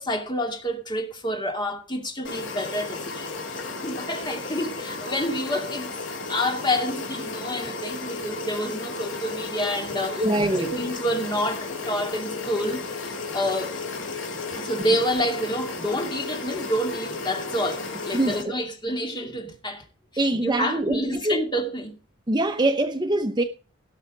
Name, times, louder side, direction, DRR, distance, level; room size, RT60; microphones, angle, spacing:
voice 1, 0.0-3.3 3.8-5.9 6.3-13.8 14.6-19.8 20.4-21.9, equal, 20° left, 2.5 m, -28 dB
sound 1, 2.2-18.4, left 3 dB, 65° left, 3.1 m, -33 dB
voice 2, 10.1-10.8 18.1-18.6 20.2-21.4 22.3-23.4, right 1 dB, 20° right, 0.8 m, -24 dB
17.5 x 6.4 x 5.2 m
head